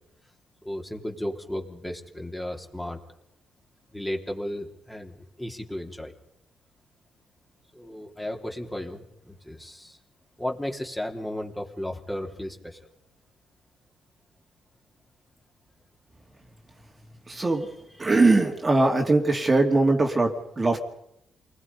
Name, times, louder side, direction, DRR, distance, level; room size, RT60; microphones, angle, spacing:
voice 1, 0.6-3.0 3.9-6.1 7.7-10.0 10.4-12.8 17.3-17.7 18.0-18.1, left 1 dB, 10° left, 1 dB, 3.3 m, -34 dB
voice 2, 17.3-17.7 18.0-20.8, right 2 dB, 25° right, 2 dB, 2.7 m, -21 dB
28.0 x 20.0 x 5.4 m, 0.79 s
cardioid pair, 90°, 0 cm